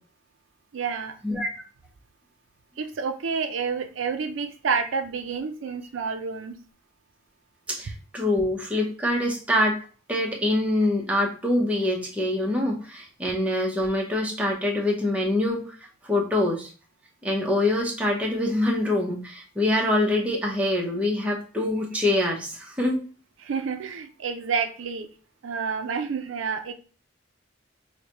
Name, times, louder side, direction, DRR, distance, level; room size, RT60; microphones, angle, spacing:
voice 1, 0.7-1.1 2.8-6.6 23.4-25.1 25.4-26.7, right 5 dB, 80° right, 7 dB, 0.4 m, -29 dB
voice 2, 7.7-9.8 10.1-15.7 16.0-16.7 17.2-23.0, left 1 dB, 5° right, -2 dB, 0.6 m, -25 dB
4.7 x 2.1 x 2.8 m, 0.38 s
head